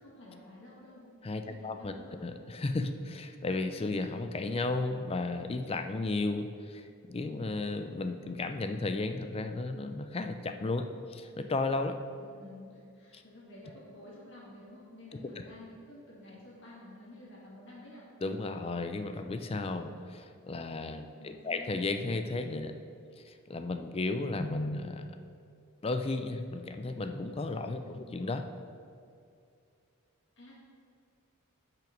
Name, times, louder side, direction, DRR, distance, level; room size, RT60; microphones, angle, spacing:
voice 1, 0.0-1.1 1.5-2.3 12.2-18.1 19.9-20.1 21.1-21.8 27.8-28.2 30.4-30.6, left 1 dB, 55° left, -6 dB, 1.8 m, -51 dB
voice 2, 1.2-1.9 2.2-12.0 15.1-15.2 18.2-22.7 23.2-25.1 25.8-28.4, left 2 dB, 25° left, 7 dB, 0.4 m, -34 dB
8.9 x 6.0 x 5.1 m, 2.4 s
head